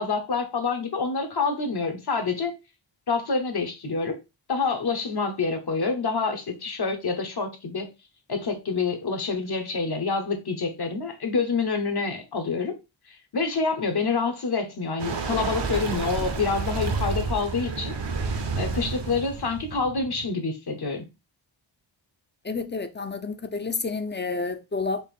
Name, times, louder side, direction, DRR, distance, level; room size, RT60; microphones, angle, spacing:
voice 1, 0.0-2.5 3.1-4.2 4.5-7.9 8.3-12.7 13.3-17.9 18.6-21.0, left 4 dB, 55° left, 1.0 m, -27 dB
sound 1, 15.0-20.3, right 4 dB, 60° right, 0.8 m, -30 dB
voice 2, 22.4-25.0, left 4 dB, 25° left, 0.5 m, -30 dB
4.4 x 2.5 x 3.5 m
wide cardioid pair, 90°, 48 cm